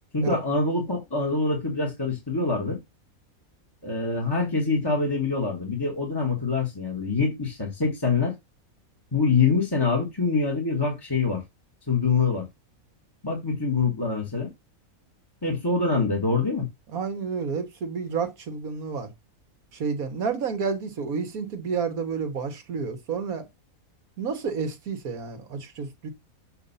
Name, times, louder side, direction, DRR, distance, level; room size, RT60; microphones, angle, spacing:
voice 1, 0.1-2.8 3.8-8.3 9.1-11.4 11.9-12.5 13.2-14.5 15.4-16.7, left 4 dB, 15° left, 1.3 m, -25 dB
voice 2, 16.9-19.1 19.7-23.5 24.2-26.1, right 5 dB, 80° right, 1.7 m, -30 dB
7.1 x 2.6 x 5.4 m
omnidirectional pair, 1.5 m